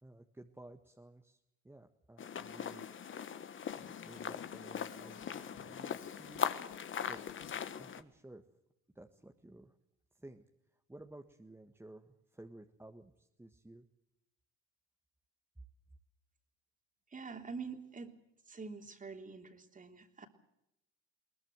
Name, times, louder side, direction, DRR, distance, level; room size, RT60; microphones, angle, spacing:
voice 1, 0.0-1.4 1.6-2.9 3.7-6.5 7.1-7.2 7.8-8.4 8.9-9.8 10.1-10.5 10.9-13.9, right 1 dB, 5° right, 4 dB, 1.6 m, -54 dB
sound 1, 2.2-8.0, left 8 dB, 35° left, 1.5 m, -40 dB
Drum kit, 3.7-7.9, left 12 dB, 65° left, 2.1 m, -57 dB
voice 2, 17.1-18.1 18.5-20.3, right 4 dB, 25° right, 6 dB, 3.4 m, -46 dB
22.0 x 19.5 x 7.9 m, 0.83 s
supercardioid pair, 100°, 33 cm